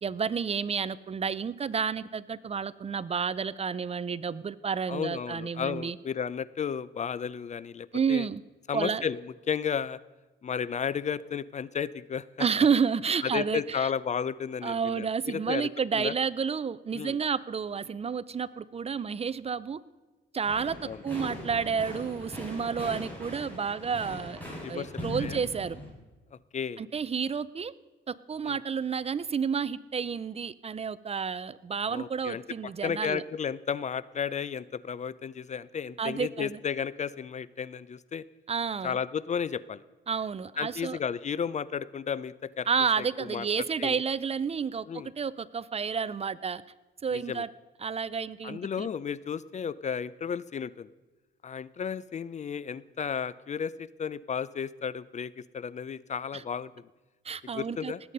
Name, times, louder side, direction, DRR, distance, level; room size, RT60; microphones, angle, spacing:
voice 1, 0.0-6.0 7.9-8.4 8.7-9.0 12.4-13.9 14.6-19.8 20.3-20.8 21.0-24.4 24.7-25.8 26.8-27.7 28.1-33.2 36.0-36.6 38.5-39.0 40.1-41.0 42.7-46.6 47.0-47.5 47.8-48.9 56.3-56.4 57.2-57.9, right 6 dB, 30° right, 19 dB, 0.5 m, -30 dB
voice 2, 4.9-8.3 8.7-9.2 9.5-10.0 10.4-12.5 13.2-16.1 16.9-17.2 20.8-21.0 24.6-25.4 26.5-26.8 28.4-28.6 31.9-32.4 32.8-38.2 38.8-39.8 40.6-42.7 43.0-43.5 43.8-44.0 44.9-45.1 47.1-47.4 48.4-50.9 51.4-56.7 57.5-58.0, left 7 dB, 35° left, 19 dB, 0.4 m, -33 dB
sound 1, 20.4-25.9, equal, 10° left, 5.8 m, -40 dB
19.0 x 8.3 x 5.4 m, 1.2 s
cardioid pair, 90°, 20 cm